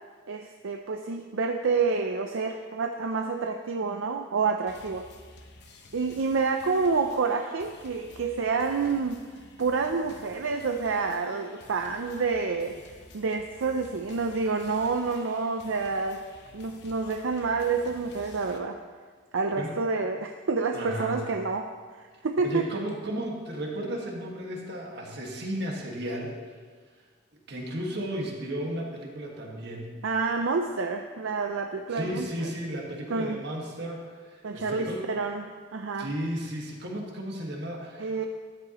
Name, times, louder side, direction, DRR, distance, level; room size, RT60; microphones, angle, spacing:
voice 1, 0.3-5.1 5.9-9.2 9.6-16.2 16.5-18.8 19.3-21.7 22.0-22.7 30.0-32.5 33.1-33.4 34.4-36.1 38.0-38.2, right 4 dB, 80° right, 5 dB, 0.5 m, -28 dB
sound 1, 4.7-18.6, left 2 dB, 60° left, 0.9 m, -52 dB
voice 2, 20.7-21.2 22.4-26.4 27.5-30.0 31.9-35.0 36.0-38.3, right 1 dB, 55° right, -1 dB, 1.7 m, -34 dB
13.0 x 9.8 x 3.0 m, 1.5 s
head